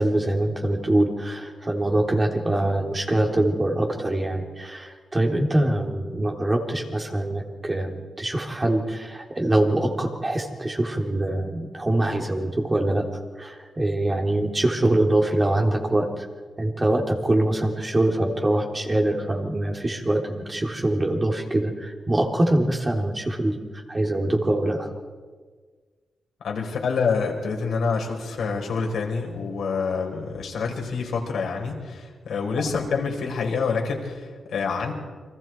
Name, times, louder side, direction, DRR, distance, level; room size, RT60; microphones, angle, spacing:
voice 1, 0.0-13.0 13.4-16.2 16.6-24.9, right 1 dB, 20° right, 2 dB, 3.3 m, -24 dB
voice 2, 26.4-34.9, left 5 dB, 80° left, 1 dB, 4.6 m, -27 dB
29.5 x 24.5 x 4.6 m, 1.5 s
cardioid pair, 105°, 0 cm